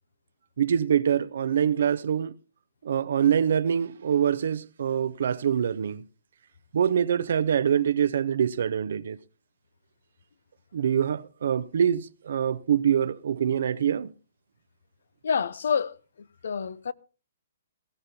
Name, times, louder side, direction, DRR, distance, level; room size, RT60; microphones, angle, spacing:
voice 1, 0.6-2.3 2.8-6.0 6.7-9.2 10.7-14.1, right 8 dB, 70° right, 0.7 m, -24 dB
voice 2, 15.2-16.9, left 6 dB, 75° left, 0.7 m, -28 dB
18.5 x 16.0 x 2.8 m
hypercardioid pair, 145°, 0 cm